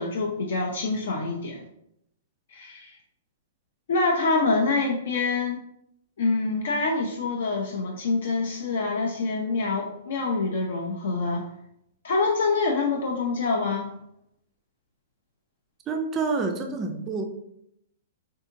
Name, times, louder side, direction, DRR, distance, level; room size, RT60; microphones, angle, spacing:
voice 1, 0.0-1.6 2.5-3.0 3.9-5.6 6.2-11.4 12.0-13.9, left 3 dB, 60° left, 1 dB, 0.4 m, -26 dB
voice 2, 15.9-17.2, right 4 dB, 15° right, 4 dB, 0.3 m, -28 dB
3.5 x 2.7 x 2.5 m, 0.77 s
hypercardioid pair, 175°, 0 cm